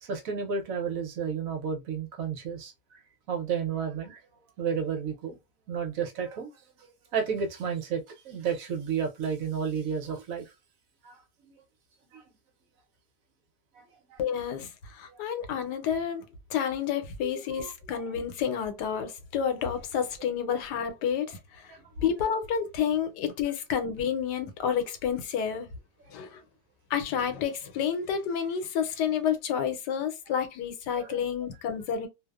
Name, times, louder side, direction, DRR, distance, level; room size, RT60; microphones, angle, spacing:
voice 1, 0.0-3.0 3.3-4.2 4.6-5.4 5.7-6.5 6.8-10.5 11.0-11.2 11.4-11.5 12.1-12.2 13.8-14.2 15.1-15.2 17.2-17.3 17.6-18.0 20.4-20.5 21.7-21.8 31.0-31.2, right 6 dB, 65° right, 0.9 m, -32 dB
voice 2, 14.2-16.2 16.5-21.7 22.0-25.7 26.1-26.4 26.9-32.1, left 8 dB, 80° left, 1.2 m, -30 dB
2.7 x 2.0 x 2.3 m
omnidirectional pair, 1.8 m